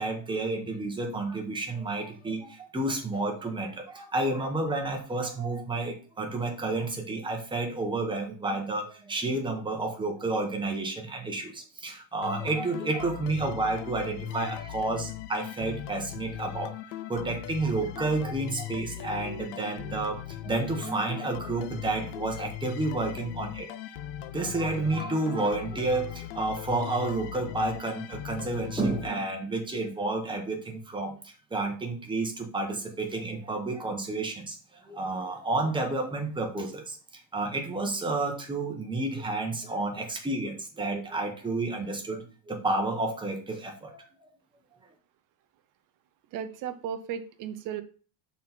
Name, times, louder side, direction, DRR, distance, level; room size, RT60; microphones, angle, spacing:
voice 1, 0.0-16.7 17.1-23.7 24.3-34.6 34.8-37.0 37.3-44.0, right 2 dB, 10° right, 3 dB, 1.0 m, -30 dB
sound 1, 12.2-29.7, left 12 dB, 65° left, 0.5 m, -39 dB
voice 2, 46.3-47.8, right 8 dB, 45° right, 10 dB, 0.7 m, -35 dB
6.0 x 4.1 x 4.4 m, 0.38 s
cardioid pair, 170°, 46 cm